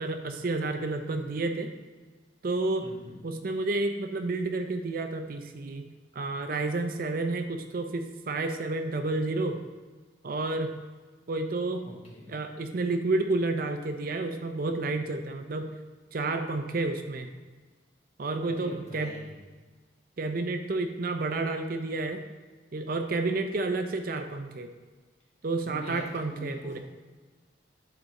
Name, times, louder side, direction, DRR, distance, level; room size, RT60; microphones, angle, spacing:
voice 1, 0.0-1.7 2.4-2.9 3.2-5.8 6.1-9.6 10.2-10.8 11.3-11.9 12.3-15.7 16.1-17.3 18.2-19.2 20.2-22.2 22.7-24.7 25.4-26.8, right 2 dB, 50° right, 6 dB, 0.5 m, -30 dB
voice 2, 2.8-3.2 11.8-12.3 18.4-19.4 25.6-26.0 26.3-26.8, left 1 dB, 35° left, -4 dB, 1.7 m, -44 dB
10.5 x 4.1 x 3.7 m, 1.4 s
head